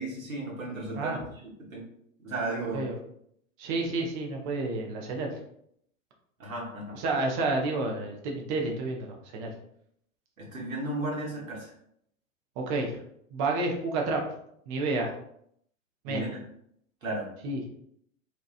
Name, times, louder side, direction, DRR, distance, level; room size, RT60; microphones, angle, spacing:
voice 1, 0.0-1.4 1.7-1.8 2.2-2.8 6.4-7.0 10.4-11.7 16.1-16.3 17.0-17.3, right 2 dB, 80° right, -2 dB, 1.0 m, -34 dB
voice 2, 3.6-5.3 6.9-9.5 12.6-13.0 13.3-14.2 14.7-15.1 16.0-16.3 17.4-17.6, right 3 dB, 25° right, 0 dB, 0.3 m, -30 dB
2.8 x 2.2 x 2.4 m, 0.71 s
figure-of-eight pair, 90°, 40 cm